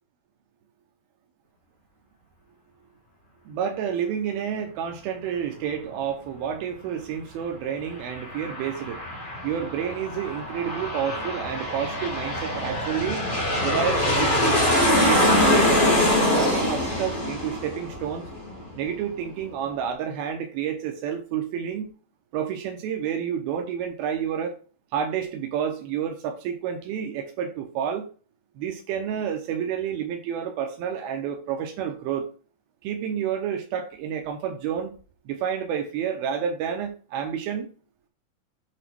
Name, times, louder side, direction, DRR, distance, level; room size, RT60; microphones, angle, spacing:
voice 1, 3.5-9.0 9.4-13.3 13.6-15.9 16.3-18.3 18.7-21.9 22.3-24.6 24.9-28.1 28.6-32.3 32.8-34.9 35.3-37.7, right 8 dB, 85° right, 3 dB, 2.6 m, -29 dB
Aircraft, 7.8-18.9, left 1 dB, 40° left, 0.7 m, -24 dB
8.0 x 3.0 x 4.5 m, 0.38 s
omnidirectional pair, 4.3 m